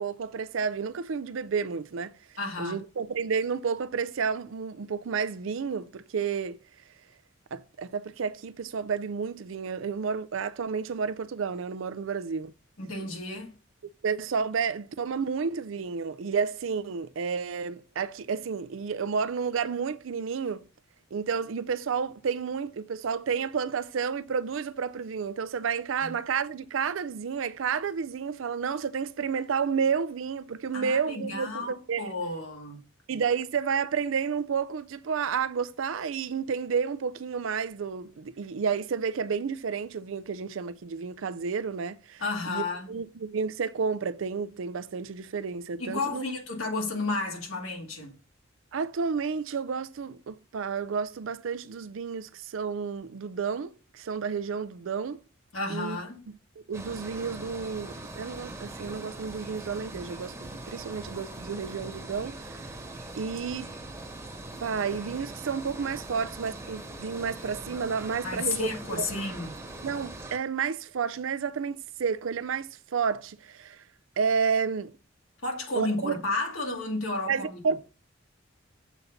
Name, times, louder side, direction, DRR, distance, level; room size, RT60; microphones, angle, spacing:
voice 1, 0.0-2.1 2.6-6.6 7.5-12.5 14.0-20.6 21.1-32.1 33.1-46.2 48.7-55.2 55.7-56.0 56.7-62.6 63.1-63.7 64.6-69.0 69.8-73.8 74.2-74.9 75.7-76.1 77.3-77.8, right 6 dB, 75° right, 0.4 m, -31 dB
voice 2, 2.4-2.8 12.8-13.5 26.0-26.1 30.7-32.8 42.2-42.9 45.8-48.1 55.5-56.2 68.2-69.6 75.4-77.6, left 3 dB, 85° left, 2.2 m, -32 dB
sound 1, 56.7-70.4, right 2 dB, 15° right, 1.1 m, -41 dB
7.0 x 4.0 x 5.8 m
head